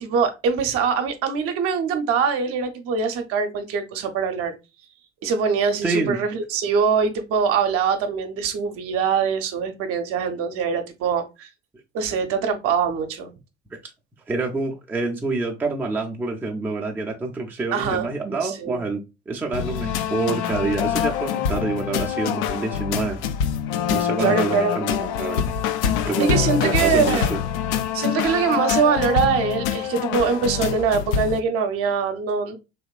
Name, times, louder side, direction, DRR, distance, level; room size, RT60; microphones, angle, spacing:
voice 1, 0.0-4.5 5.2-11.5 11.9-13.3 17.7-18.1 18.4-18.8 24.2-24.8 26.2-27.3 27.9-32.6, right 6 dB, 45° right, 0.7 m, -23 dB
voice 2, 5.8-6.2 13.7-13.8 14.3-19.0 19.3-23.2 23.9-25.4 26.0-27.4, right 3 dB, 5° right, 0.5 m, -27 dB
sound 1, 19.5-31.4, left 9 dB, 50° left, 0.4 m, -25 dB
3.4 x 2.9 x 2.3 m
figure-of-eight pair, 60°, 33 cm